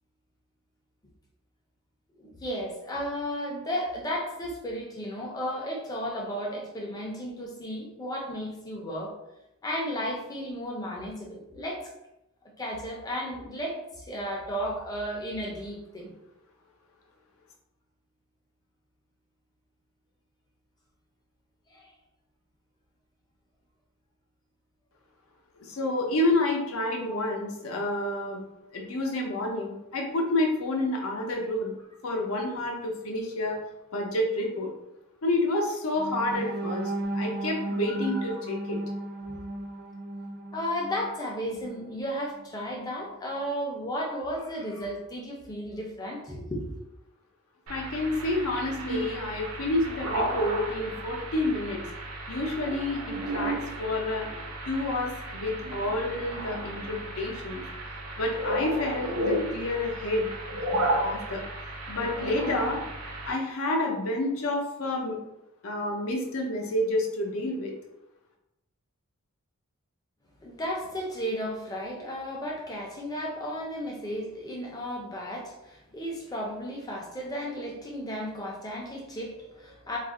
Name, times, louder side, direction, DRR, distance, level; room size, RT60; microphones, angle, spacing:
voice 1, 2.2-9.1 9.6-11.9 12.6-16.1 21.7-21.9 27.1-27.2 38.0-38.2 39.3-39.4 40.5-46.7 70.4-80.0, equal, 15° left, -1 dB, 0.5 m, -34 dB
voice 2, 25.6-28.4 28.7-31.7 32.0-33.6 33.9-34.7 35.2-38.8 47.7-51.8 52.3-54.3 54.7-57.6 58.2-60.3 60.7-61.4 61.9-62.8 63.2-65.2 65.6-67.7, left 1 dB, 70° left, 0 dB, 0.6 m, -29 dB
sound 1, 36.0-41.9 42.4-42.5 42.9-43.1, right 2 dB, 40° right, 0.4 m, -35 dB
sound 2, 47.7-63.3, right 1 dB, 80° right, 0.6 m, -33 dB
2.4 x 2.1 x 3.6 m, 0.89 s
head